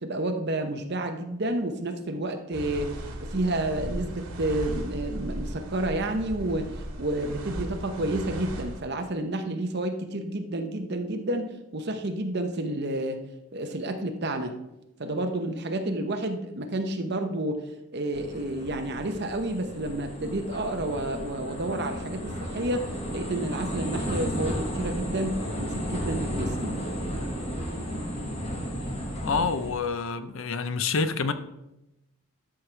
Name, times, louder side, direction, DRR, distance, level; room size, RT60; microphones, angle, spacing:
voice 1, 0.0-6.7 7.0-13.2 13.5-14.5 15.0-26.8, right 1 dB, 50° right, 6 dB, 0.8 m, -30 dB
sound 1, 2.5-8.8, right 1 dB, 85° right, 1.8 m, -36 dB
sound 2, 18.1-29.7, equal, 30° left, 1.3 m, -33 dB
voice 2, 29.2-31.3, left 4 dB, 60° left, 11 dB, 0.6 m, -27 dB
12.5 x 6.0 x 3.3 m, 0.91 s
head